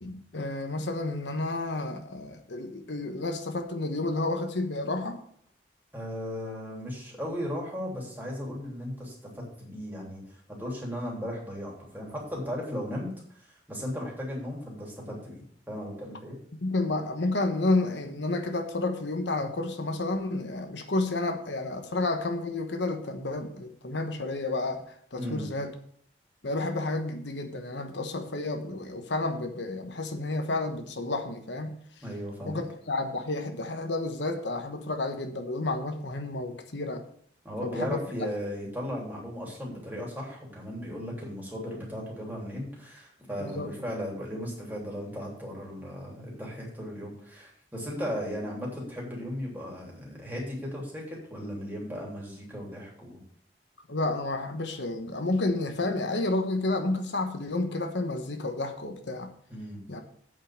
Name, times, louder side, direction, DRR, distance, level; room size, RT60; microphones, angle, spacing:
voice 1, 0.0-5.2 16.6-25.7 26.4-31.8 32.4-37.0 37.6-38.0 43.4-43.7 53.9-59.3 59.9-60.0, left 2 dB, 85° left, 6 dB, 1.2 m, -31 dB
voice 2, 5.9-9.1 9.6-16.4 25.2-25.5 32.0-32.6 37.4-53.2 59.5-59.8, equal, 10° right, -3 dB, 3.1 m, -36 dB
8.5 x 5.5 x 7.4 m, 0.63 s
head